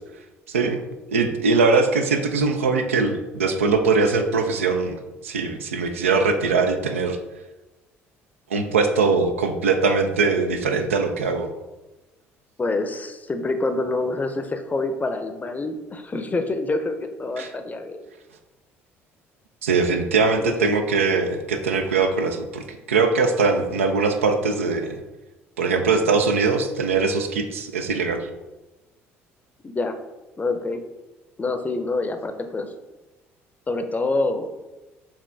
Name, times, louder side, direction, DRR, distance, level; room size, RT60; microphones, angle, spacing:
voice 1, 0.5-0.8 1.1-5.0 5.2-7.2 8.5-11.5 17.4-17.5 19.6-25.0 25.6-28.3, right 4 dB, 85° right, 6 dB, 0.4 m, -21 dB
voice 2, 12.6-18.0 20.4-20.5 29.6-30.0 30.4-30.8 31.4-32.7 33.7-34.5, left 2 dB, 25° left, 7 dB, 0.5 m, -26 dB
4.3 x 2.8 x 3.3 m, 1.1 s
hypercardioid pair, 55°, 7 cm